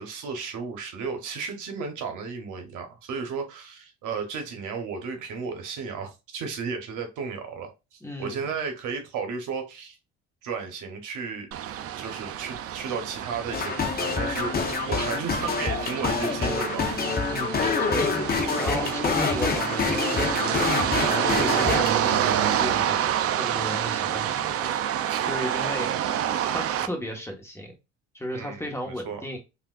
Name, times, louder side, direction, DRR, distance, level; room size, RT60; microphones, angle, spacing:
voice 1, 0.0-10.0 10.4-11.5 11.9-17.3 28.3-29.2, right 5 dB, 70° right, 0.8 m, -34 dB
voice 2, 8.0-8.4 17.3-24.7 25.2-25.9 26.5-27.7 28.1-29.4, equal, 10° left, 1.2 m, -35 dB
sound 1, 11.5-26.9, right 10 dB, 50° right, 0.4 m, -28 dB
sound 2, 13.5-21.9, left 5 dB, 30° left, 0.6 m, -26 dB
3.4 x 2.5 x 2.3 m
supercardioid pair, 70°, 31 cm